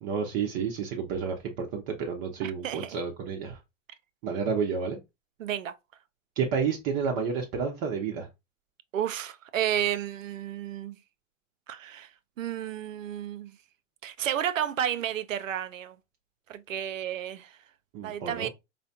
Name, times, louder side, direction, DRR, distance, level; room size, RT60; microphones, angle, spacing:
voice 1, 0.0-3.6 4.2-5.0 6.4-8.3 17.9-18.5, right 6 dB, 40° right, 0.8 m, -30 dB
voice 2, 2.4-3.0 5.4-5.8 8.9-11.0 11.7-12.1 12.4-13.6 14.0-16.0 16.5-17.6 18.0-18.5, right 10 dB, 90° right, 0.5 m, -32 dB
4.8 x 2.1 x 2.8 m
hypercardioid pair, 105°, 38 cm